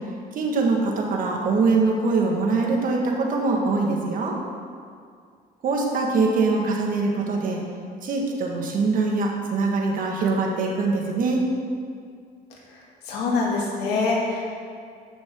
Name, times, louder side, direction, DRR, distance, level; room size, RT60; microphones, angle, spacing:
voice 1, 0.3-4.4 5.6-7.6 8.0-11.4, right 3 dB, 55° right, 0 dB, 1.8 m, -23 dB
voice 2, 13.0-14.5, left 3 dB, 85° left, -3 dB, 2.4 m, -24 dB
14.0 x 6.3 x 3.8 m, 2.2 s
cardioid pair, 110°, 17 cm